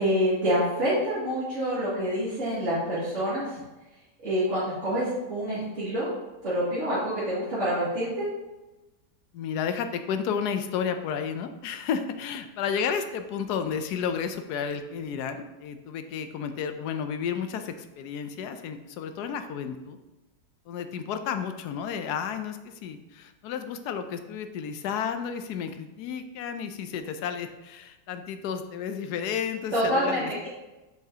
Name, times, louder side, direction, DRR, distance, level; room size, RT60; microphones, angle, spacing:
voice 1, 0.0-3.6 4.2-6.1 6.4-8.3 29.7-30.5, equal, 45° right, -12 dB, 2.6 m, -27 dB
voice 2, 9.3-20.0 20.7-30.5, left 7 dB, 70° left, 8 dB, 1.1 m, -32 dB
7.3 x 5.8 x 2.8 m, 1.1 s
omnidirectional pair, 1.9 m